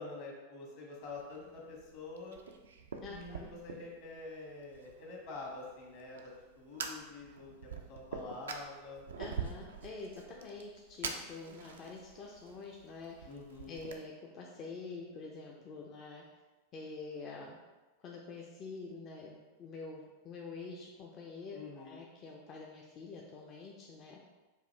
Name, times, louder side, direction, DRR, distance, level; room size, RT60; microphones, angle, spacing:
voice 1, 0.0-2.4 3.0-9.0 13.3-13.8 21.5-22.0, left 3 dB, 60° left, -3 dB, 1.4 m, -47 dB
Fire, 1.0-14.0, right 5 dB, 80° right, 0.4 m, -46 dB
voice 2, 3.0-3.5 9.1-13.1 13.7-16.2 16.7-17.6 18.0-24.2, left 4 dB, 40° left, -1 dB, 0.5 m, -46 dB
4.8 x 2.5 x 3.2 m, 1.2 s
hypercardioid pair, 95°, 0 cm